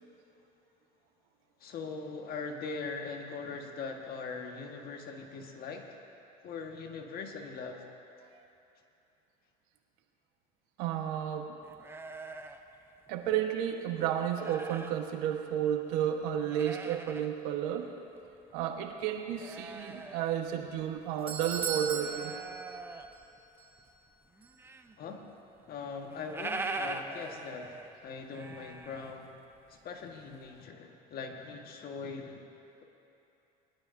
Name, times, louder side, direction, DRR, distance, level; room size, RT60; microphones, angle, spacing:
voice 1, 1.6-6.0 6.4-7.8 25.0-25.3 25.7-27.8 28.0-29.4 29.7-32.4, left 4 dB, 50° left, 3 dB, 1.6 m, -41 dB
voice 2, 10.8-11.6 13.1-17.9 18.5-22.4, right 10 dB, 80° right, 4 dB, 1.3 m, -32 dB
sound 1, 11.6-13.6 13.9-15.0 15.5-15.6 16.2-17.3 17.7-17.8 18.2-21.2 21.4-23.4 23.8-25.0 25.2-25.3 25.6-25.7 25.9-29.8 30.1-30.6, right 3 dB, 10° right, 0.7 m, -43 dB
Doorbell, 20.8-23.3 23.6-23.7 24.4-24.5, right 6 dB, 30° right, 2.1 m, -38 dB
20.5 x 12.0 x 2.7 m, 2.9 s
supercardioid pair, 100°, 19 cm